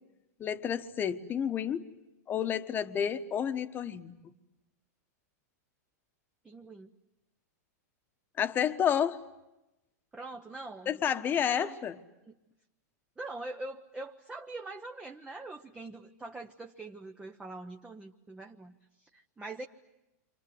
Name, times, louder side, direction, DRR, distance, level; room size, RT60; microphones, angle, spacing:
voice 1, 0.4-1.9 2.3-4.1 8.4-9.2 10.9-12.0, left 8 dB, 20° left, 10 dB, 1.3 m, -30 dB
voice 2, 6.4-6.9 10.1-11.0 11.5-11.8 12.3-12.4 13.2-19.7, right 2 dB, 10° right, 3 dB, 1.0 m, -43 dB
29.5 x 26.0 x 7.9 m, 0.96 s
supercardioid pair, 145°, 9 cm